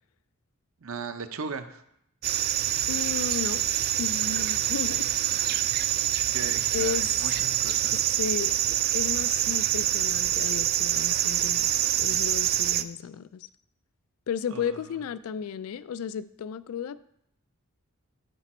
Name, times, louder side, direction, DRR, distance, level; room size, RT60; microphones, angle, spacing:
voice 1, 0.8-1.8 5.3-5.8 6.1-8.0 14.5-14.8, right 5 dB, 65° right, 9 dB, 0.7 m, -38 dB
sound 1, 2.2-12.8, right 13 dB, 45° right, 0.4 m, -26 dB
voice 2, 2.9-3.7 4.0-5.1 5.3-5.4 6.7-7.1 7.9-8.5 8.9-13.5 14.3-17.0, left 7 dB, 75° left, 16 dB, 0.3 m, -34 dB
13.5 x 5.1 x 4.3 m, 0.76 s
head